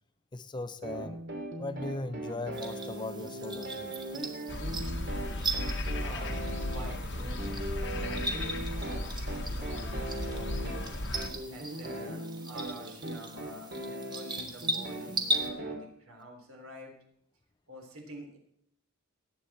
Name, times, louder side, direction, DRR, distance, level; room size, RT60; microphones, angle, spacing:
voice 1, 0.3-1.2 1.6-3.9, left 2 dB, 20° left, 11 dB, 0.5 m, -38 dB
sound 1, 0.8-15.8, right 1 dB, 50° right, 2.6 m, -39 dB
sound 2, 2.5-15.5, right 1 dB, 20° right, 1.5 m, -39 dB
sound 3, 4.5-11.3, left 1 dB, 55° left, 1.3 m, -35 dB
voice 2, 5.6-10.9 11.5-16.9 17.7-18.4, equal, 65° right, 2 dB, 3.7 m, -48 dB
19.0 x 8.6 x 4.3 m, 0.69 s
head